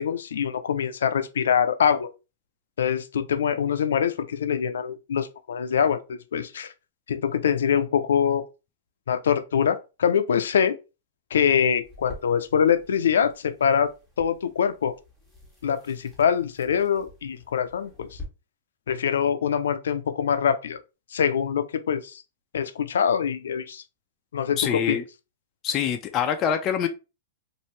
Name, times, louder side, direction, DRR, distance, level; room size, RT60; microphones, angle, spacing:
voice 1, 0.0-2.1 2.8-6.7 7.1-8.4 9.1-10.8 11.3-13.9 14.2-14.9 15.6-18.1 18.9-20.8 21.1-22.2 22.5-23.8 24.3-25.0, left 7 dB, 85° left, 0.4 m, -24 dB
sound 1, 11.8-18.3, left 2 dB, 5° right, 1.2 m, -48 dB
voice 2, 24.6-25.0 25.6-26.9, left 8 dB, 25° left, 0.4 m, -25 dB
2.8 x 2.5 x 3.1 m
hypercardioid pair, 145°, 0 cm